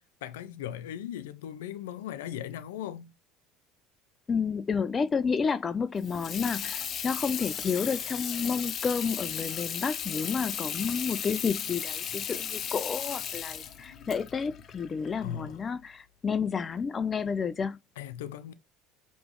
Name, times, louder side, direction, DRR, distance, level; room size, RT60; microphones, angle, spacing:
voice 1, 0.2-3.1 15.2-15.6 18.0-18.5, left 10 dB, 85° left, 0.5 m, -38 dB
voice 2, 4.3-17.8, left 6 dB, 30° left, 0.4 m, -30 dB
Water tap faucet / Sink (filling or washing), 6.0-15.6, left 8 dB, 50° left, 0.8 m, -36 dB
5.1 x 3.1 x 3.1 m
hypercardioid pair, 80°, 0 cm